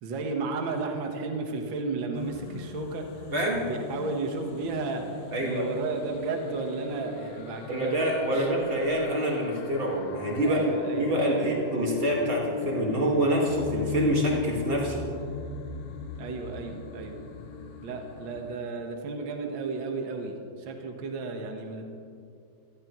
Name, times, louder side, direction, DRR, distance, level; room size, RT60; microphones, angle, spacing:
voice 1, 0.0-3.3 3.5-5.0 5.4-7.9 8.3-8.5 10.4-11.1 11.4-11.6 16.2-17.1 17.8-21.8, right 3 dB, 90° right, 3 dB, 1.0 m, -33 dB
sound 1, 2.1-18.5, left 8 dB, 80° left, 2.5 m, -39 dB
voice 2, 5.3-5.6 7.7-10.7 11.0-15.0, right 1 dB, 65° right, -2 dB, 0.5 m, -26 dB
18.5 x 14.5 x 3.1 m, 2.4 s
omnidirectional pair, 4.3 m